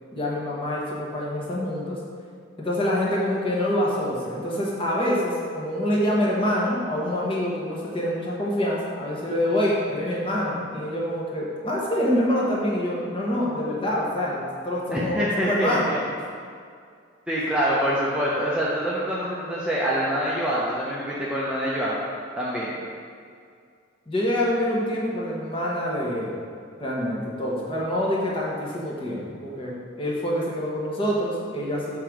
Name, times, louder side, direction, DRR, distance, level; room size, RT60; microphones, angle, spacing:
voice 1, 0.1-2.0 2.6-15.9 24.1-26.4 26.8-32.0, left 1 dB, 25° left, -4 dB, 1.1 m, -26 dB
voice 2, 14.9-16.0 17.3-22.0 22.4-22.7, equal, 5° right, -7 dB, 0.6 m, -25 dB
6.7 x 3.7 x 4.6 m, 2.2 s
head